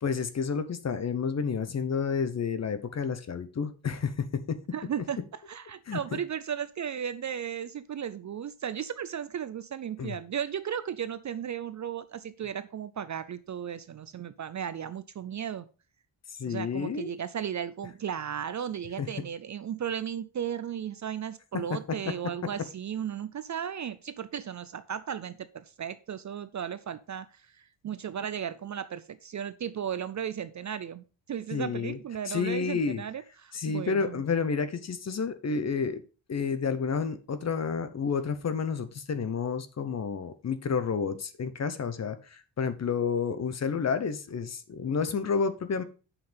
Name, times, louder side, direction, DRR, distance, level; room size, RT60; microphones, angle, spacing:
voice 1, 0.0-4.6 5.9-6.2 10.0-10.1 16.4-17.1 19.0-19.1 21.5-22.1 31.5-32.0 32.3-33.0 33.5-36.0 36.3-45.8, left 5 dB, 35° left, 12 dB, 0.8 m, -30 dB
voice 2, 4.7-5.2 5.5-15.7 16.5-34.2, right 8 dB, 40° right, 14 dB, 0.4 m, -35 dB
8.0 x 5.8 x 5.0 m, 0.34 s
wide cardioid pair, 175°, 45 cm